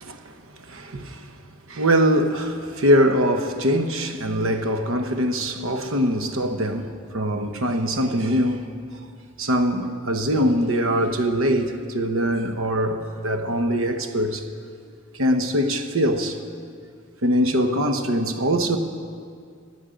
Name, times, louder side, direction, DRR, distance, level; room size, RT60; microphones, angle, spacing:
voice 1, 0.6-1.3 1.7-8.7 9.4-14.4 15.1-16.4 17.2-18.8, equal, 80° right, 1.0 m, -22 dB
15.5 x 9.7 x 5.1 m
head